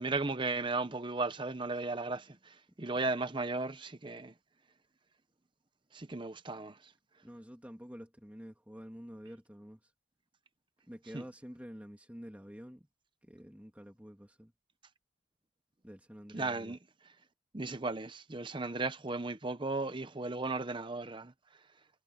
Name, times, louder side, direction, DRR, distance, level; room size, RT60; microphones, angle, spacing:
voice 1, 0.0-4.3 5.9-6.9 11.1-11.2 16.3-16.8 17.5-21.3, right 3 dB, 25° right, 0.7 m, -35 dB
voice 2, 7.2-9.9 10.9-12.9 13.2-14.5 15.8-16.8, equal, 5° right, 2.6 m, -49 dB
head